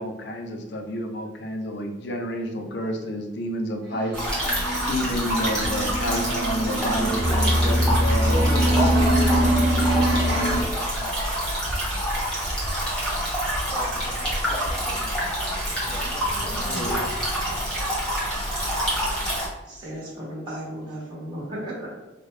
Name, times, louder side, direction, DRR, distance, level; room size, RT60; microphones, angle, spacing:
voice 1, 0.0-4.2 4.9-9.0 16.3-17.1, equal, 65° left, 3 dB, 0.6 m, -30 dB
sound 1, 3.8-10.6, right 2 dB, 75° right, 0.9 m, -27 dB
sound 2, 4.1-19.5, equal, 5° left, 1.4 m, -27 dB
Musical instrument, 6.9-10.5, left 1 dB, 45° right, 0.7 m, -23 dB
voice 2, 8.3-11.2 13.7-15.2 15.8-17.1 20.9-21.0, right 1 dB, 20° left, 1 dB, 0.6 m, -36 dB
voice 3, 19.7-22.0, right 1 dB, 25° right, -7 dB, 1.4 m, -35 dB
4.7 x 2.4 x 3.2 m, 1.1 s
head